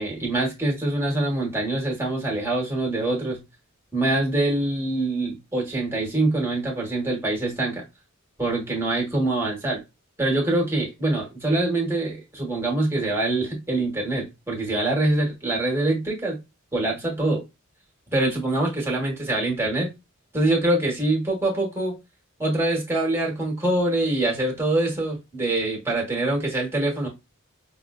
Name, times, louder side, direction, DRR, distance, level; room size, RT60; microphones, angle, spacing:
voice 1, 0.0-3.4 3.9-7.8 8.4-9.8 10.2-16.4 16.7-17.4 18.1-19.9 20.3-22.0 22.4-27.1, right 2 dB, 10° right, 1.1 m, -24 dB
5.2 x 2.2 x 2.3 m
head